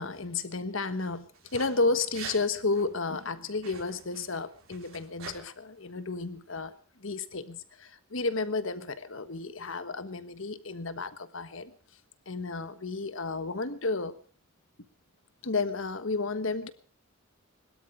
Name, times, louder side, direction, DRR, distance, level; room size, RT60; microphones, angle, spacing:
voice 1, 0.0-6.7 7.0-11.7 12.3-14.1 15.4-16.7, left 3 dB, 65° left, 12 dB, 1.3 m, -32 dB
sound 1, 1.3-1.7 2.0-2.4 2.7-2.8 3.5-5.4, right 5 dB, 70° right, 4.2 m, -44 dB
21.5 x 12.5 x 5.0 m, 0.42 s
head